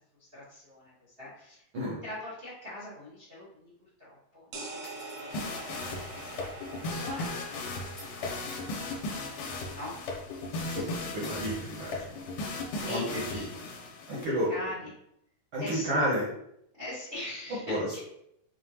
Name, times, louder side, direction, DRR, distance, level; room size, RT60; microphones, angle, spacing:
voice 1, 0.2-1.6 2.0-3.7 4.0-5.7 5.9-9.9 12.7-13.5 14.5-14.9 15.6-16.0 16.7-18.0, left 1 dB, 40° right, -9 dB, 0.8 m, -43 dB
sound 1, 4.5-10.1, right 3 dB, 85° right, 2.2 m, -45 dB
sound 2, 4.8-5.3 8.0-8.9 11.2-11.7, equal, 40° left, 0.7 m, -52 dB
sound 3, 5.3-14.3, left 2 dB, 75° left, 2.0 m, -37 dB
voice 2, 10.6-12.2 12.8-13.0 13.3-13.4 14.1-14.5 15.5-16.3 17.7-18.0, equal, 65° right, -6 dB, 1.2 m, -31 dB
5.6 x 2.1 x 2.9 m, 0.76 s
omnidirectional pair, 3.3 m